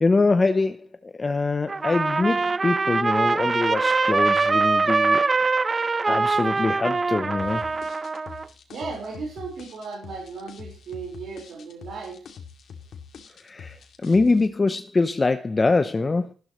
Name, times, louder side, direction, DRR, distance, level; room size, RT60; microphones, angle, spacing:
voice 1, 0.0-5.7 6.1-7.7 13.4-16.3, left 3 dB, 30° left, 0.8 m, -24 dB
Trumpet, 1.7-8.5, right 4 dB, 35° right, 0.5 m, -23 dB
sound 1, 7.4-14.5, left 6 dB, 70° left, 2.5 m, -44 dB
voice 2, 8.7-12.2, right 4 dB, 75° right, 4.6 m, -36 dB
14.0 x 12.0 x 3.1 m
cardioid pair, 80°, 0 cm